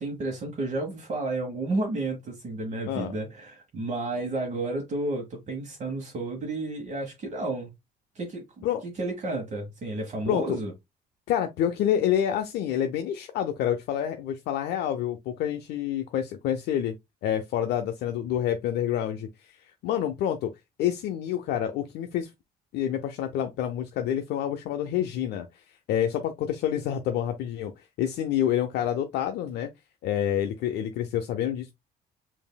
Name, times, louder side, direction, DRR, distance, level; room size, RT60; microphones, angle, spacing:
voice 1, 0.0-7.7 8.1-10.7, right 2 dB, 45° right, 1.1 m, -31 dB
voice 2, 10.3-10.6 11.3-16.9 17.2-19.3 19.8-20.5 20.8-22.3 22.7-25.5 25.9-27.7 28.0-29.7 30.0-31.7, left 10 dB, 75° left, 0.5 m, -27 dB
5.3 x 2.6 x 2.2 m
cardioid pair, 110°, 17 cm